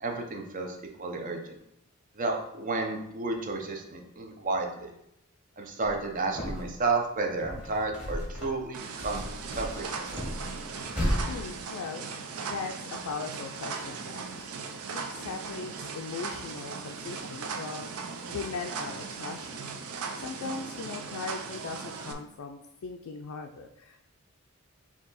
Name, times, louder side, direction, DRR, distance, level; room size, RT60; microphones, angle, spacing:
voice 1, 0.0-1.5 2.2-4.9 5.6-9.2 9.6-9.8, right 3 dB, 35° right, 2 dB, 0.6 m, -31 dB
sound 1, 5.8-6.9 7.2-8.7 9.0-11.2, equal, 5° right, 1.3 m, -34 dB
sound 2, 8.7-22.1, right 5 dB, 80° right, 0.5 m, -38 dB
voice 2, 11.3-14.5 14.9-17.9 18.3-19.6 20.2-24.1, left 4 dB, 75° left, 3 dB, 0.4 m, -39 dB
4.6 x 2.8 x 4.0 m, 0.80 s
head